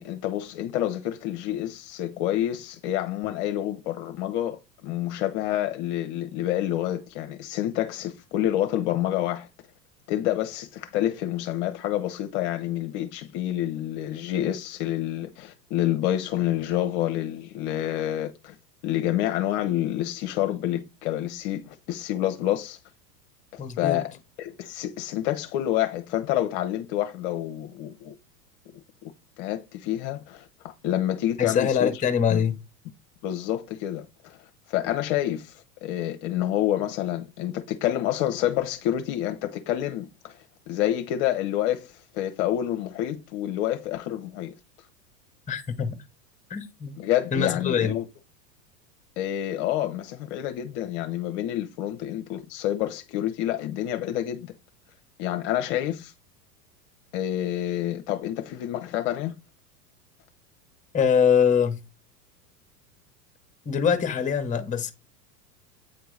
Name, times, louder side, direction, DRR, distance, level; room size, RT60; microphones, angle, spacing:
voice 1, 0.0-9.5 10.1-18.5 18.8-22.8 23.5-24.1 24.4-28.1 29.4-32.0 32.3-32.4 33.2-34.4 34.7-40.4 40.7-44.5 47.0-48.0 49.2-54.5 55.2-56.1 57.1-59.3, left 12 dB, 45° left, 0.7 m, -28 dB
voice 2, 23.6-24.0 31.4-32.6 45.5-46.0 46.5-46.9 47.3-48.0 60.9-61.8 63.7-64.9, left 7 dB, 15° left, 0.9 m, -23 dB
8.5 x 3.4 x 3.2 m
hypercardioid pair, 95°, 47 cm